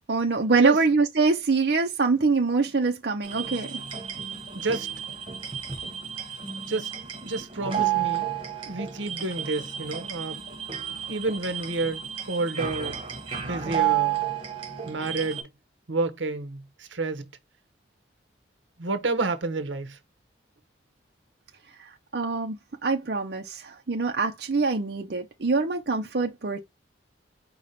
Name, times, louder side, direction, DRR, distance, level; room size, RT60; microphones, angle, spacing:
voice 1, 0.1-3.8 22.1-26.6, right 4 dB, 55° right, 0.7 m, -24 dB
sound 1, 3.2-15.4, right 10 dB, 30° right, 1.3 m, -31 dB
voice 2, 4.5-4.9 6.7-6.9 7.2-8.3 8.7-10.4 11.1-13.0 13.4-14.2 14.9-15.5 15.9-17.3 18.8-20.0, right 3 dB, 80° right, 1.0 m, -29 dB
5.1 x 2.4 x 4.1 m
head